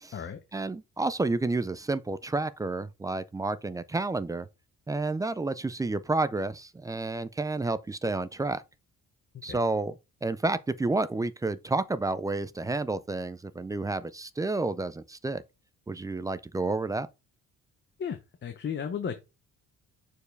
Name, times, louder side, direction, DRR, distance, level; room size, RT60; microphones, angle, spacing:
voice 1, 0.5-4.5 4.9-8.6 9.4-9.9 10.2-15.4 15.9-17.1, right 3 dB, 10° right, 0.3 m, -30 dB
voice 2, 18.0-19.2, left 7 dB, 35° left, 0.8 m, -35 dB
6.8 x 4.7 x 3.3 m
cardioid pair, 140°, 31 cm